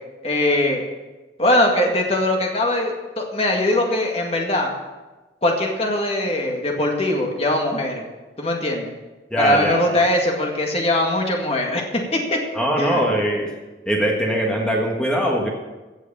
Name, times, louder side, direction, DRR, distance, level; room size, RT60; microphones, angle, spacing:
voice 1, 0.2-0.8 1.4-4.7 5.4-8.0 8.4-8.9 9.4-12.4 12.8-13.0, left 1 dB, 35° left, 1 dB, 2.0 m, -21 dB
voice 2, 9.3-10.0 12.5-13.5 13.9-15.5, equal, 5° left, -1 dB, 1.5 m, -21 dB
16.0 x 6.4 x 7.0 m, 1.2 s
head